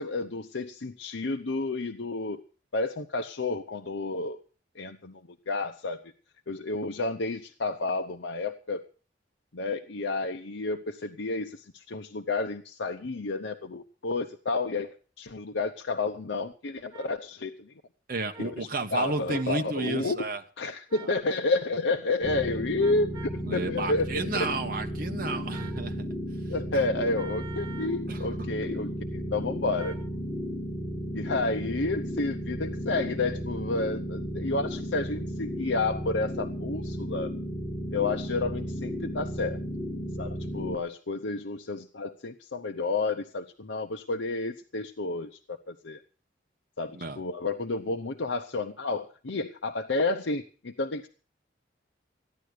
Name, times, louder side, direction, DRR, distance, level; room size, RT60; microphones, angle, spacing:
voice 1, 0.0-2.4 2.7-4.4 4.7-6.0 6.5-8.8 9.5-17.7 18.4-20.3 20.6-24.3 26.5-30.0 31.1-37.3 37.9-39.6 40.2-46.0 46.8-51.1, left 3 dB, 80° left, 0.8 m, -31 dB
sound 1, 16.9-17.1 18.3-18.5 19.3-19.5 20.9-21.2 22.8-23.4 25.5-25.8 27.1-28.0 29.8-30.1, right 7 dB, 25° right, 5.2 m, -46 dB
voice 2, 18.1-20.4 23.4-26.1 26.7-26.8 28.1-28.5 46.9-47.2, right 3 dB, 50° right, 1.4 m, -32 dB
sound 2, 22.2-40.8, equal, 25° left, 2.9 m, -34 dB
15.0 x 10.5 x 6.5 m
head